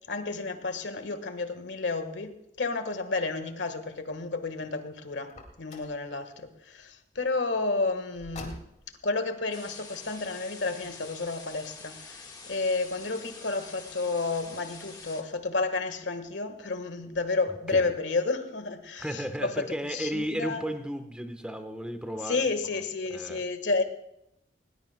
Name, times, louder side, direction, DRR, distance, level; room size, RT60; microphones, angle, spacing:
voice 1, 0.0-5.3 5.6-8.6 9.0-20.6 22.2-23.8, left 3 dB, 90° left, 8 dB, 1.5 m, -31 dB
Car, 5.2-6.0 8.1-9.0, left 1 dB, 40° left, 2.4 m, -44 dB
sound 1, 9.5-15.2, left 4 dB, 20° left, 1.5 m, -46 dB
voice 2, 19.0-22.4 22.7-22.8 23.1-23.4, equal, 5° right, 6 dB, 1.1 m, -34 dB
20.0 x 19.5 x 2.2 m, 0.80 s
head